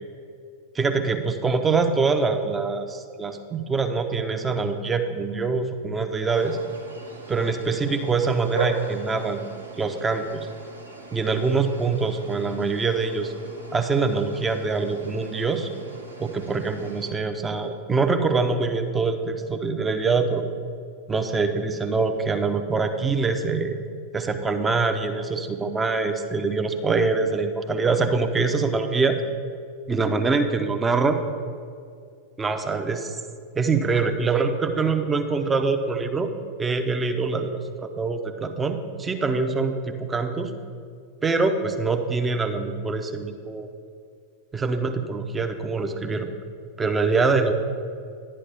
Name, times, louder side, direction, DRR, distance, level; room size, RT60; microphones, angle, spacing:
voice 1, 0.7-6.6 7.3-9.4 9.8-10.5 11.1-13.3 13.7-15.7 16.2-20.4 21.1-23.7 24.1-29.2 29.9-31.2 32.4-33.2 33.5-36.3 36.6-40.5 41.2-43.7 44.5-46.3 46.8-47.5, right 4 dB, 15° right, 7 dB, 0.7 m, -24 dB
sound 1, 6.3-17.1, right 2 dB, 80° right, 1.1 m, -39 dB
11.5 x 9.9 x 3.4 m, 2.3 s
figure-of-eight pair, 90°, 0 cm